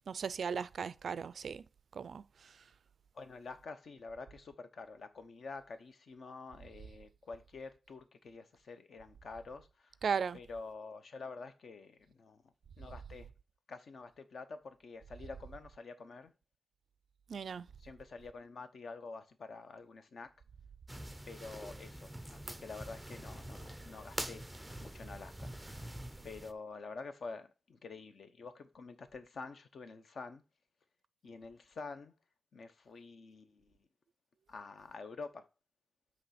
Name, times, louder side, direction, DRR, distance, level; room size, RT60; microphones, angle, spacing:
voice 1, 0.1-1.6 1.9-2.2 10.0-10.4 17.3-17.7, right 6 dB, 65° right, 0.3 m, -36 dB
voice 2, 3.1-10.0 10.3-13.3 13.7-16.3 17.8-20.3 21.3-24.5 24.8-25.9 26.2-30.4 31.2-32.1 32.5-33.8 34.5-35.5, left 4 dB, 60° left, 0.8 m, -48 dB
sound 1, 20.9-26.5, right 1 dB, 5° right, 0.5 m, -45 dB
7.8 x 3.1 x 5.8 m
wide cardioid pair, 175°, 0 cm